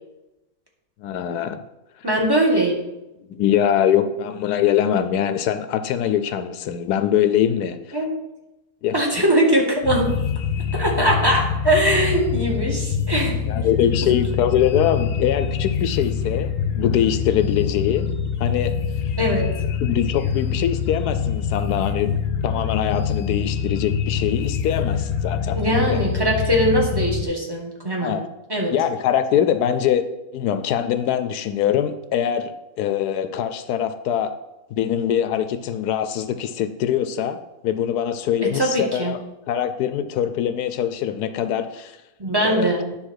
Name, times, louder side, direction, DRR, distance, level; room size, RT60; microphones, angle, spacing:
voice 1, 1.0-1.6 3.2-7.8 8.8-9.0 13.5-18.1 18.4-18.7 19.8-22.2 22.4-25.6 25.9-26.0 28.0-28.2 28.7-30.0 30.3-34.3 34.8-39.2 39.5-42.0 42.4-42.7, left 9 dB, 85° left, 10 dB, 1.1 m, -23 dB
voice 2, 2.0-2.8 7.9-8.1 8.9-10.1 10.7-13.7 19.2-19.5 25.5-28.2 28.5-28.7 38.4-39.1 42.2-42.9, right 1 dB, 15° right, -1 dB, 1.6 m, -21 dB
sound 1, 9.8-27.2, left 7 dB, 60° left, 1.1 m, -25 dB
9.7 x 3.7 x 6.3 m, 0.95 s
omnidirectional pair, 1.7 m